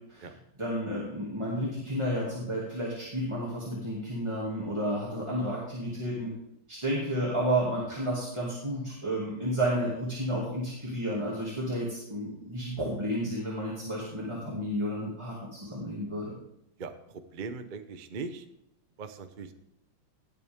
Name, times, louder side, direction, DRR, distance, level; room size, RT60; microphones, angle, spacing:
voice 1, 0.6-6.3 6.7-16.4, equal, 15° right, -6 dB, 2.3 m, -31 dB
voice 2, 16.8-18.4 19.0-19.5, right 4 dB, 50° right, 7 dB, 0.6 m, -40 dB
18.0 x 8.3 x 3.6 m, 0.81 s
omnidirectional pair, 2.2 m